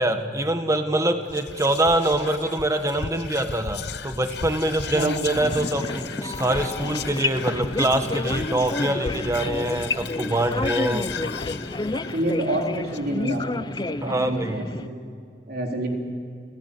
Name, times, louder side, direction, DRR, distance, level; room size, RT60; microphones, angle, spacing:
voice 1, 0.0-11.1 14.0-14.7, right 1 dB, 20° right, 7 dB, 1.6 m, -24 dB
Whispering, 1.3-13.7, left 5 dB, 65° left, 0.9 m, -35 dB
voice 2, 4.9-5.6 11.9-15.0 15.5-15.9, right 1 dB, 60° right, 1 dB, 4.0 m, -28 dB
sound 1, 5.3-14.9, left 2 dB, 25° left, 0.6 m, -30 dB
30.0 x 16.5 x 9.8 m, 2.2 s
head